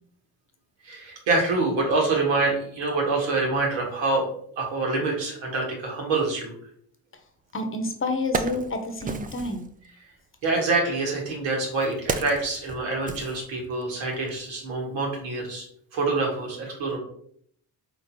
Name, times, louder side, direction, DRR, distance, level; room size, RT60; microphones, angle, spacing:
voice 1, 0.8-4.3 4.6-6.5 10.4-15.6 15.9-17.0, right 3 dB, 65° right, 0 dB, 1.6 m, -26 dB
voice 2, 7.5-9.7, left 2 dB, 25° left, 6 dB, 1.0 m, -29 dB
Wood, 7.5-7.6 8.0-9.7 10.6-14.0 14.3-14.4, right 4 dB, 20° right, 0.4 m, -33 dB
4.5 x 3.6 x 2.7 m, 0.65 s
hypercardioid pair, 45°, 49 cm